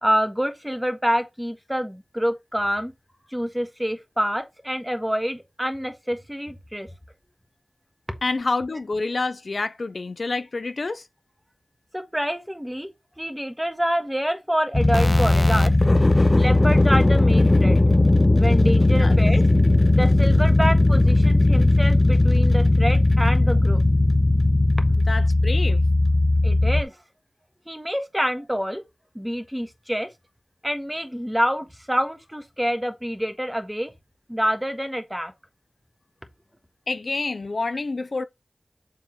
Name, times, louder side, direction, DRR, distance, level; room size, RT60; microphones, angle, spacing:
voice 1, 0.0-2.9 3.3-6.9 11.9-12.9 13.2-15.7 16.4-17.8 18.4-19.5 19.9-23.8 26.4-27.0 27.7-28.8 29.1-30.1 30.6-33.9 34.3-35.3, equal, 5° right, 1.5 m, -27 dB
voice 2, 8.2-11.0 18.8-19.1 25.1-25.8 36.9-38.2, left 3 dB, 60° left, 0.5 m, -28 dB
sound 1, 14.7-26.8, left 2 dB, 30° left, 0.8 m, -17 dB
7.2 x 3.8 x 4.6 m
wide cardioid pair, 55°, 0 cm